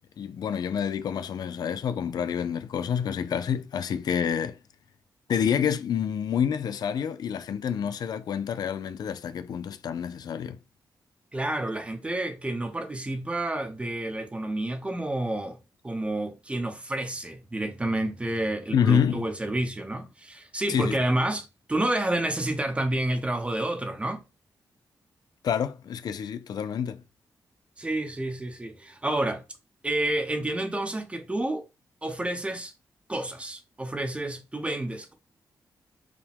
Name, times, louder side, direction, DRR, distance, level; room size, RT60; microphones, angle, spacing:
voice 1, 0.2-4.6 5.3-10.6 18.7-19.2 20.7-21.0 25.4-27.0, left 8 dB, 65° left, 0.4 m, -28 dB
voice 2, 11.3-15.6 15.8-24.2 27.8-29.4 29.8-31.7 32.0-32.7 33.1-35.1, right 1 dB, 15° right, 0.8 m, -29 dB
4.8 x 2.2 x 3.5 m
cardioid pair, 100°, 7 cm